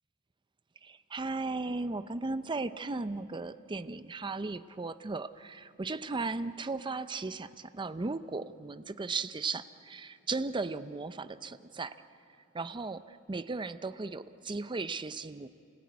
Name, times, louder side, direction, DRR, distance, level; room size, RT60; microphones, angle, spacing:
voice 1, 0.8-12.0 12.5-15.5, right 3 dB, 20° right, 12 dB, 0.5 m, -36 dB
27.5 x 18.0 x 9.5 m, 2.7 s
head